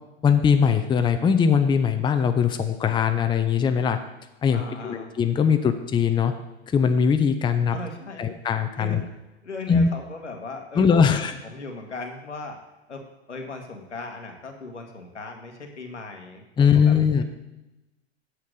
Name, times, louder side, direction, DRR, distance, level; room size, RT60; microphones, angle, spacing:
voice 1, 0.2-4.0 4.4-6.3 6.7-7.8 8.2-9.0 9.7-9.9 10.8-11.3 16.6-17.2, left 6 dB, 15° left, 7 dB, 0.6 m, -21 dB
voice 2, 4.5-5.1 7.7-8.3 8.8-9.1 9.4-12.6 12.9-16.9, left 3 dB, 90° left, 3 dB, 1.6 m, -38 dB
8.5 x 5.9 x 6.5 m, 0.97 s
hypercardioid pair, 95°, 34 cm